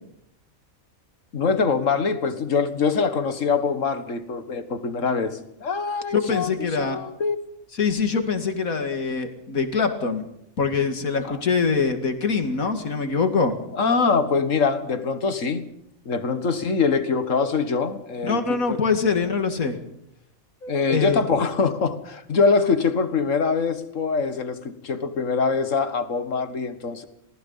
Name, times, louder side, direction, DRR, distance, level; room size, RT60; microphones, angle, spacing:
voice 1, 1.3-7.4 11.2-11.4 13.7-15.6 16.1-18.8 20.7-27.1, left 5 dB, 65° left, 11 dB, 2.0 m, -24 dB
voice 2, 6.1-7.0 7.8-10.2 10.6-13.6 18.2-19.8 20.6-21.2, left 5 dB, 85° left, 7 dB, 2.6 m, -24 dB
27.5 x 19.0 x 5.7 m, 0.74 s
omnidirectional pair, 1.4 m